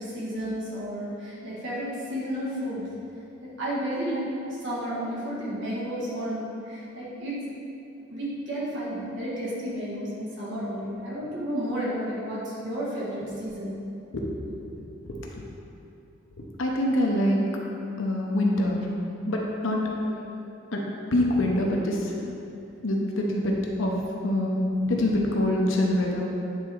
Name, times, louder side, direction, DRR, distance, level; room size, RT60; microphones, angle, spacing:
voice 1, 0.0-2.9 3.4-7.4 8.1-13.8 19.8-20.3, equal, 60° right, -7 dB, 1.5 m, -32 dB
voice 2, 14.1-14.7 15.0-15.3 16.4-17.5 18.0-18.9 19.3-19.8 20.7-22.2 22.8-26.3, left 1 dB, 70° left, -1 dB, 0.8 m, -25 dB
8.7 x 3.6 x 4.6 m, 2.7 s
head